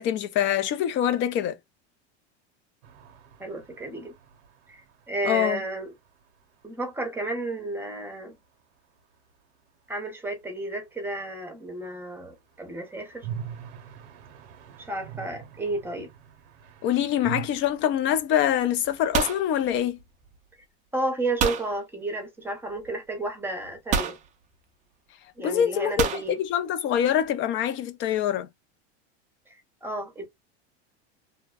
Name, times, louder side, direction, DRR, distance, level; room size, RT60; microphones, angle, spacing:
voice 1, 0.0-1.6 5.2-5.6 16.8-20.0 25.4-28.5, left 10 dB, 35° left, 0.5 m, -25 dB
sound 1, 2.8-6.6 6.9-7.0 7.2-7.3 12.3-17.5, right 8 dB, 85° right, 0.7 m, -42 dB
voice 2, 3.4-4.1 4.7-4.8 5.1-5.9 6.6-8.3 9.9-13.3 14.8-16.1 20.9-24.2 25.4-26.4 29.5-30.3, right 2 dB, 5° right, 0.8 m, -32 dB
sound 2, 17.5-17.8 18.1-18.5 18.8-20.4 21.4-21.7 22.9-23.0 23.9-24.3 26.0-26.3, right 7 dB, 25° right, 0.4 m, -27 dB
2.6 x 2.1 x 2.2 m
supercardioid pair, 130°, 32 cm